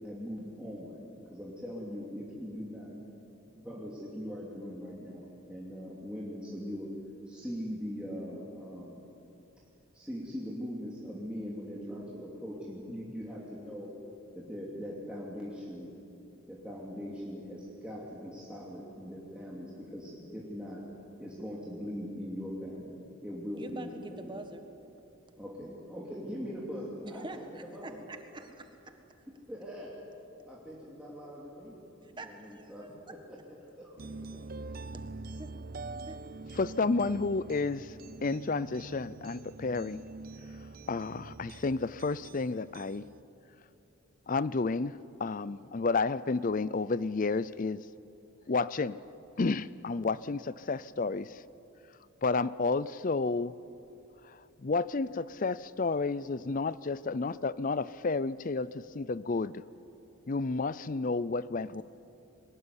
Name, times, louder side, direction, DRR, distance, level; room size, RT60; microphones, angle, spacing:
voice 1, 0.0-1.0 1.3-3.0 3.5-6.9 7.3-9.0 9.9-13.9 14.3-15.9 16.5-20.8 21.2-24.4 25.4-28.0 29.5-29.9 30.4-32.9 33.3-34.4, equal, 5° right, -6 dB, 2.8 m, -41 dB
voice 2, 23.5-24.6 27.0-28.9 32.0-32.7 34.9-35.0 35.4-35.5 36.0-36.2 61.7-61.8, right 2 dB, 20° right, 6 dB, 1.6 m, -45 dB
sound 1, 34.0-43.2, right 3 dB, 45° right, 0.5 m, -45 dB
voice 3, 36.6-37.9 38.2-40.0 40.9-43.0 44.3-44.9 45.2-47.8 48.5-49.0 49.4-51.4 52.2-53.5 54.6-59.5 60.3-61.8, left 3 dB, 40° left, 18 dB, 0.5 m, -31 dB
22.5 x 20.0 x 9.8 m, 2.9 s
head